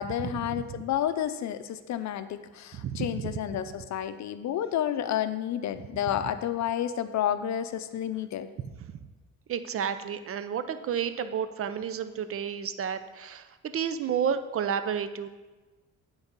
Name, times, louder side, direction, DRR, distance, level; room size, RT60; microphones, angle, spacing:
voice 1, 0.0-8.5, left 10 dB, 65° left, 11 dB, 0.6 m, -30 dB
voice 2, 2.7-3.3 9.5-15.3, right 8 dB, 50° right, 11 dB, 0.5 m, -31 dB
9.4 x 4.0 x 5.3 m, 1.2 s
cardioid pair, 90°, 30 cm